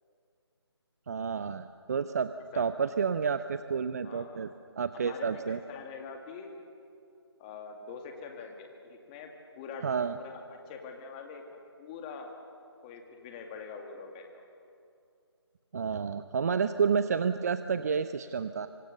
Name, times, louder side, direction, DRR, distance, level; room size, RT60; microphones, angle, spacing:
voice 1, 1.1-5.6 9.8-10.2 15.7-18.7, right 6 dB, 35° right, 11 dB, 0.6 m, -30 dB
voice 2, 4.0-4.4 4.9-6.6 7.4-9.3 9.5-9.9 10.1-12.3 12.8-14.4, left 5 dB, 20° left, 3 dB, 2.3 m, -44 dB
25.5 x 25.0 x 6.7 m, 2.5 s
figure-of-eight pair, 155°, 14 cm